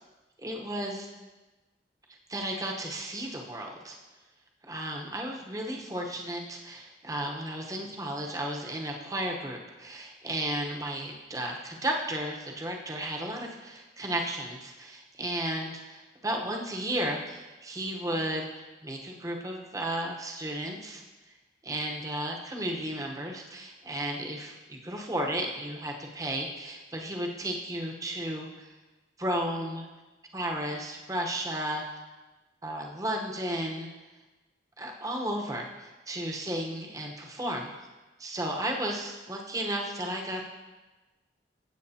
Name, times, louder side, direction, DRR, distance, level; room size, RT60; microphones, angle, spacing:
voice 1, 0.4-1.1 2.3-4.0 4.7-21.0 21.6-28.8 29.2-29.9 30.3-31.9 32.6-33.9 34.8-37.7 38.2-40.5, right 1 dB, 20° right, 1 dB, 1.0 m, -34 dB
15.5 x 7.8 x 2.8 m, 1.2 s
head